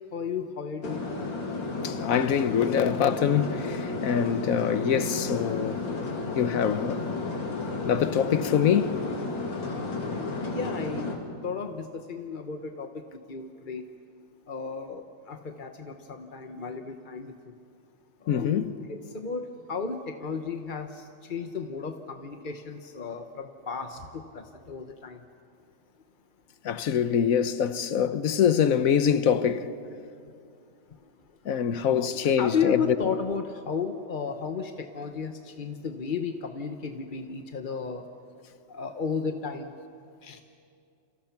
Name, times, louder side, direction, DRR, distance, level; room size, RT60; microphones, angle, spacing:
voice 1, 0.1-1.1 9.6-11.1 11.4-13.8 14.5-17.3 18.2-19.4 19.7-25.2 31.9-38.1 38.7-39.7 40.2-40.4, left 5 dB, 35° left, 0.8 m, -34 dB
sound 1, 0.8-11.2, left 3 dB, 75° left, 3.4 m, -32 dB
voice 2, 1.8-5.8 6.3-7.1 7.8-9.0 18.3-18.7 26.6-29.7 31.4-32.8, left 8 dB, 55° left, 1.1 m, -24 dB
29.0 x 28.5 x 5.9 m
omnidirectional pair, 2.0 m